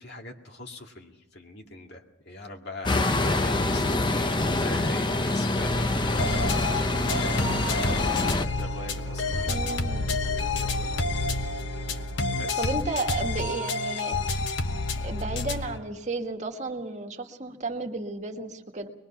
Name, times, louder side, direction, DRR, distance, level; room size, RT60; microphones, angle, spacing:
voice 1, 0.0-10.0 10.3-11.0 12.4-12.7, left 2 dB, 60° left, 2 dB, 2.3 m, -42 dB
sound 1, 2.8-8.4, left 2 dB, 25° left, 0.8 m, -26 dB
sound 2, 5.5-12.4, right 1 dB, 65° right, 0.9 m, -37 dB
sound 3, 6.2-15.8, left 3 dB, 75° left, 1.2 m, -29 dB
voice 2, 9.5-10.2 12.6-14.2 15.0-18.9, right 3 dB, 40° right, 3 dB, 1.7 m, -33 dB
24.0 x 21.5 x 5.8 m, 0.90 s
head